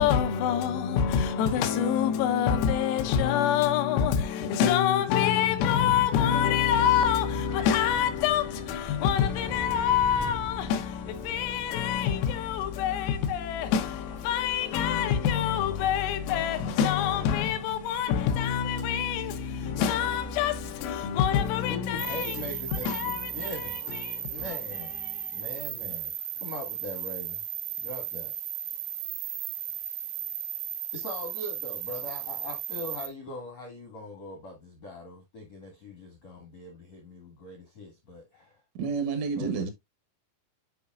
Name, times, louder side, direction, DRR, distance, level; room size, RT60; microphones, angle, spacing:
voice 1, 0.0-22.4 22.7-24.6 25.1-25.3, left 8 dB, 85° left, 3.9 m, -26 dB
sound 1, 7.1-21.0, equal, 5° right, 0.6 m, -46 dB
voice 2, 21.7-23.8 24.3-25.0 25.3-27.4 27.8-28.3 30.9-38.6 39.3-39.7, left 2 dB, 60° left, 1.7 m, -41 dB
sound 2, 22.0-33.1, right 11 dB, 90° right, 3.4 m, -35 dB
voice 3, 38.8-39.7, right 5 dB, 75° right, 3.6 m, -29 dB
10.0 x 5.0 x 2.5 m
omnidirectional pair, 5.9 m